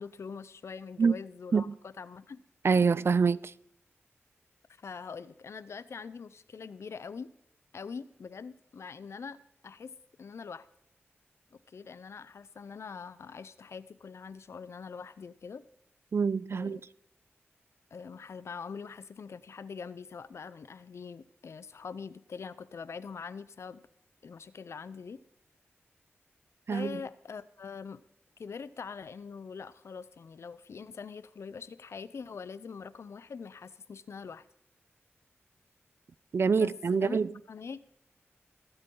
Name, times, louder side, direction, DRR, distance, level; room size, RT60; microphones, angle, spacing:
voice 1, 0.0-2.4 4.8-7.3 7.7-9.4 9.6-9.9 10.2-10.7 11.5-15.6 16.5-16.8 17.9-23.8 24.2-25.2 26.7-28.0 28.4-34.4 36.4-37.2 37.5-37.8, left 5 dB, 75° left, 0.6 m, -43 dB
voice 2, 2.6-3.5 16.1-16.8 26.7-27.0 36.3-37.3, right 5 dB, 60° right, 0.4 m, -26 dB
21.5 x 8.0 x 3.8 m
cardioid pair, 55°, 5 cm